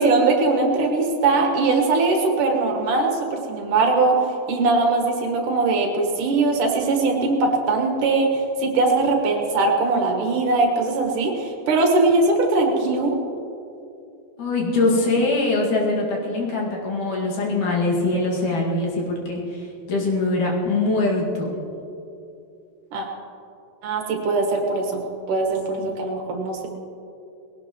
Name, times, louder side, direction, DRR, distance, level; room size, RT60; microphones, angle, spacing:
voice 1, 0.0-4.2 4.5-13.1 22.9-23.1 23.8-26.7, right 3 dB, 70° right, 2 dB, 2.9 m, -21 dB
voice 2, 14.4-21.6 25.8-26.0, left 2 dB, 65° left, -3 dB, 3.5 m, -23 dB
20.5 x 17.5 x 3.1 m, 2.7 s
omnidirectional pair, 3.9 m